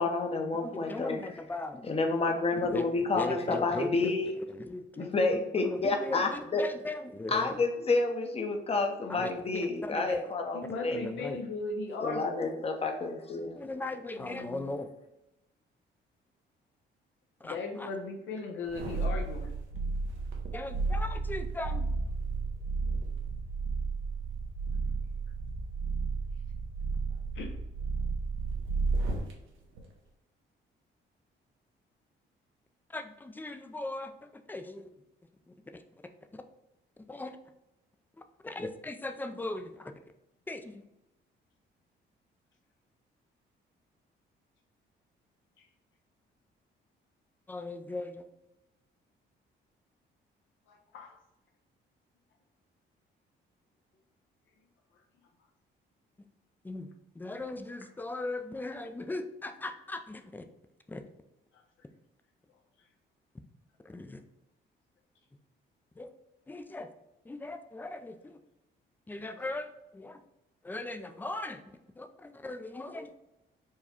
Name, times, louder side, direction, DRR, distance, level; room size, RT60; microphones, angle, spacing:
voice 1, 0.0-1.2 1.9-4.3 5.0-6.6 7.3-11.0 12.0-13.6 14.3-14.6, left 3 dB, 30° left, 4 dB, 0.7 m, -29 dB
voice 2, 0.6-2.1 2.5-2.9 3.1-7.6 9.1-10.3 10.9-11.4 13.6-14.9 17.4-17.9 20.5-21.9 32.9-34.9 35.5-36.0 36.3-36.4 37.1-37.4 38.4-39.9 40.5-40.8 47.5-48.3 56.6-56.9 57.1-60.4 60.9-61.0 63.8-64.2 66.0-66.1 66.5-66.9 67.2-68.4 69.1-70.2 70.6-73.2, left 2 dB, 10° left, 8 dB, 0.4 m, -39 dB
voice 3, 10.5-12.5 17.4-19.5 27.3-27.5 50.7-51.1, left 3 dB, 75° left, 2 dB, 0.7 m, -37 dB
sound 1, 18.6-29.3 29.7-29.9, right 4 dB, 85° right, 0.9 m, -33 dB
4.6 x 2.2 x 4.3 m, 0.90 s
cardioid pair, 90°, 20 cm